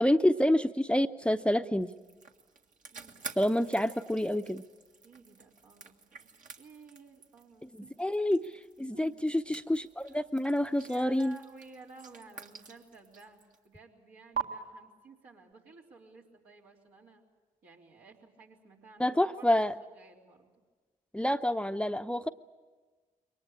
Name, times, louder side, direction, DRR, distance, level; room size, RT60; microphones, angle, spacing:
voice 1, 0.0-1.9 3.4-4.6 7.7-8.5 8.8-11.4 19.0-19.7 21.1-22.3, left 1 dB, 5° left, 9 dB, 0.7 m, -28 dB
sound 1, 1.8-13.7 14.3-14.4, right 7 dB, 55° right, 1.8 m, -46 dB
voice 2, 2.9-3.5 5.0-8.0 8.9-9.2 10.8-17.2 17.6-19.7 19.9-20.5, right 3 dB, 75° right, -3 dB, 3.6 m, -54 dB
23.0 x 19.5 x 8.7 m, 1.3 s
hypercardioid pair, 45°, 16 cm